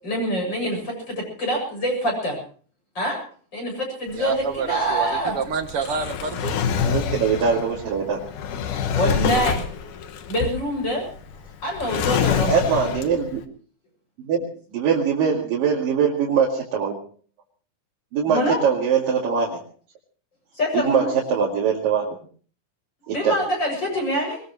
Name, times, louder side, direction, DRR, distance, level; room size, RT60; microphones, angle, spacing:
voice 1, 0.0-2.4 2.9-3.2 3.5-5.4 8.9-9.7 10.3-11.1 11.6-12.6 18.3-18.6 20.6-21.1 23.1-24.4, equal, 30° left, 1 dB, 8.0 m, -25 dB
Drawer open or close, 4.1-13.4, left 7 dB, 70° left, 2.7 m, -27 dB
voice 2, 4.1-6.6, right 5 dB, 50° right, 7 dB, 2.1 m, -28 dB
voice 3, 6.8-8.2 12.5-13.4 14.2-16.9 18.1-19.6 20.7-22.1 23.1-23.3, right 6 dB, 90° right, -3 dB, 4.0 m, -22 dB
22.0 x 21.0 x 3.1 m, 0.43 s
omnidirectional pair, 3.8 m